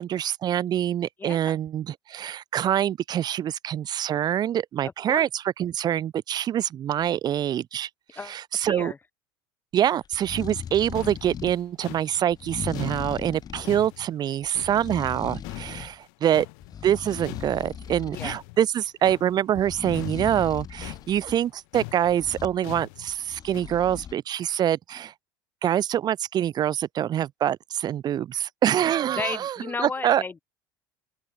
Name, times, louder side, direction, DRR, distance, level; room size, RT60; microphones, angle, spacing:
voice 1, 0.0-7.9 8.2-8.9 9.7-16.5 16.8-25.1 25.6-30.2, right 10 dB, 40° right, 0.8 m, -25 dB
voice 2, 1.2-1.6 5.1-5.3 8.2-8.4 8.6-9.0 18.1-18.4 29.2-30.4, left 4 dB, 20° left, 0.6 m, -33 dB
sound 1, 10.0-11.6 12.3-13.7 14.4-16.0 16.3-18.4 19.5-21.4 22.1-22.6 23.1-24.1, left 8 dB, 35° left, 4.5 m, -38 dB
sound 2, 10.7-10.8 10.9-15.2 15.4-17.0 17.2-23.6, left 37 dB, 65° left, 4.6 m, -42 dB
open air
hypercardioid pair, 75°, 11 cm